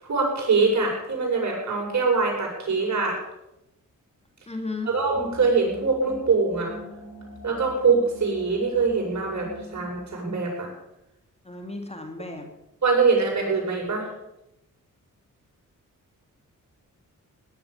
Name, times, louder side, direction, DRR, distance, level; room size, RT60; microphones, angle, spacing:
voice 1, 0.0-3.2 4.8-6.7 7.4-10.7 12.8-14.1, right 4 dB, 55° right, -1 dB, 7.9 m, -23 dB
voice 2, 4.5-4.9 11.4-12.5, left 2 dB, 20° left, 4 dB, 2.7 m, -34 dB
sound 1, 4.9-10.1, equal, 65° left, 5.0 m, -44 dB
18.0 x 11.5 x 7.0 m, 0.90 s
cardioid pair, 75°, 33 cm